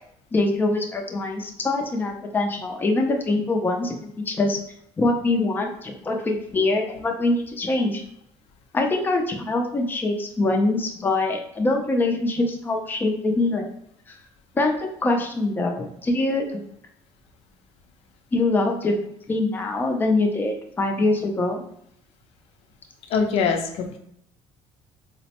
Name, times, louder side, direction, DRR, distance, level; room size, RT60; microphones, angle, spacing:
voice 1, 0.3-4.6 5.0-8.0 8.7-13.7 14.1-14.2 14.5-16.6 18.3-21.6, left 2 dB, 20° left, 2 dB, 0.5 m, -24 dB
voice 2, 23.1-24.0, left 5 dB, 65° left, 4 dB, 0.6 m, -23 dB
4.2 x 2.0 x 2.9 m, 0.71 s
cardioid pair, 145°, 11 cm